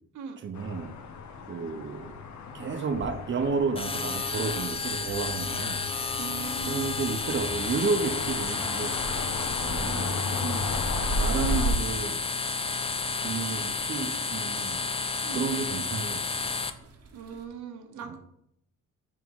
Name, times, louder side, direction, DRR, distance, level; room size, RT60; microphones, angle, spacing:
voice 1, 0.4-0.9 1.5-2.2 2.5-5.8 6.7-9.0 9.6-10.8 11.1-12.2 13.2-14.8 15.3-16.3 18.1-18.2, right 4 dB, 40° right, 6 dB, 0.8 m, -31 dB
sound 1, 0.5-11.7, left 2 dB, 70° left, 1.0 m, -34 dB
sound 2, 3.7-16.7, left 4 dB, 20° left, 0.5 m, -31 dB
sound 3, 4.4-17.5, left 1 dB, 55° right, 1.1 m, -47 dB
voice 2, 6.1-6.9 15.2-15.4 17.1-18.2, right 6 dB, 75° right, 6 dB, 1.1 m, -39 dB
6.4 x 3.8 x 5.3 m, 0.76 s
cardioid pair, 90°, 30 cm